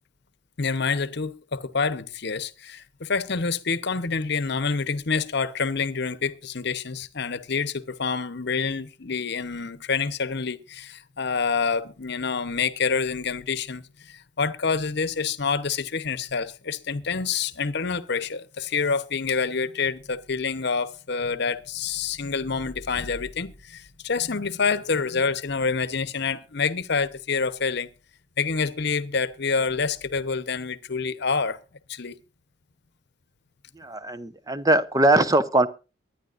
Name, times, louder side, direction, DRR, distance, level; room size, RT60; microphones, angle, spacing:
voice 1, 0.6-27.9 28.4-31.6 31.9-32.2, left 5 dB, 60° left, 0.9 m, -27 dB
voice 2, 33.8-35.7, right 1 dB, 20° right, 0.7 m, -21 dB
23.5 x 10.0 x 2.5 m
head